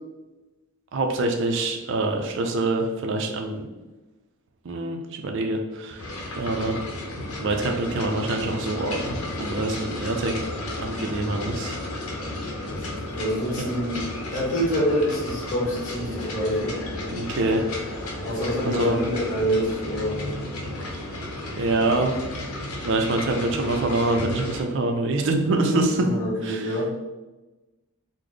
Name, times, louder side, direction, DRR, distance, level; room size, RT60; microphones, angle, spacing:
voice 1, 0.9-3.6 4.6-6.8 7.4-10.3 10.8-11.8 13.6-13.7 17.1-17.6 18.6-19.0 21.6-22.1 22.8-26.1 26.4-26.8, right 2 dB, 55° right, 3 dB, 0.4 m, -25 dB
sound 1, 6.0-24.6, left 1 dB, 85° left, 0.7 m, -33 dB
voice 2, 13.1-14.0 14.3-16.7 18.2-20.4 26.0-26.9, equal, 35° left, -5 dB, 1.1 m, -26 dB
3.8 x 2.0 x 3.2 m, 1.1 s
head